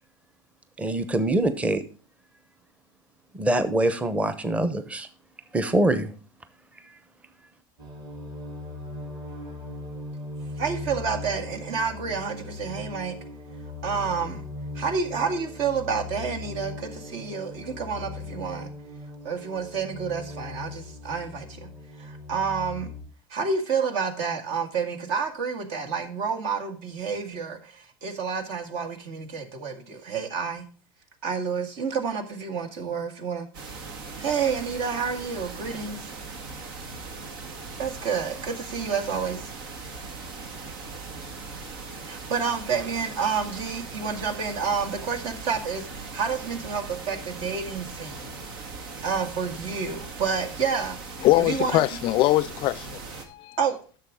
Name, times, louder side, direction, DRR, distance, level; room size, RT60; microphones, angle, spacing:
voice 1, 0.8-1.8 3.3-5.1 5.5-6.1 6.8-7.0, right 1 dB, 10° right, 0.9 m, -24 dB
sound 1, 7.8-23.0, left 2 dB, 40° right, 3.2 m, -39 dB
voice 2, 10.6-13.2 13.8-14.4 14.7-18.7 19.2-21.7 22.0-22.9 23.3-30.6 31.2-33.5 34.2-36.1 37.8-39.5 39.9-40.0 42.0-48.3 49.0-51.0 51.4-51.8 53.6-53.8, right 6 dB, 65° right, 2.0 m, -29 dB
sound 2, 33.5-53.3, right 4 dB, 85° right, 2.0 m, -39 dB
voice 3, 51.2-53.0 53.3-53.6, left 17 dB, 45° left, 0.3 m, -22 dB
10.5 x 6.8 x 3.7 m
supercardioid pair, 120°, 11 cm